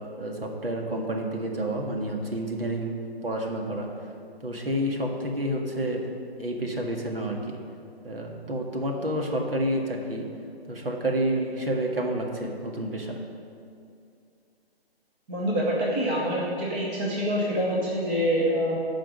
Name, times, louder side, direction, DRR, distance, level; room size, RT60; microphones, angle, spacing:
voice 1, 0.0-2.9 3.2-3.9 4.4-6.1 6.4-7.6 8.0-10.3 10.7-13.2, right 1 dB, 65° right, 1 dB, 1.9 m, -29 dB
voice 2, 15.3-18.8, equal, 10° right, -5 dB, 0.7 m, -26 dB
13.5 x 5.1 x 6.3 m, 2.4 s
figure-of-eight pair, 145°, 31 cm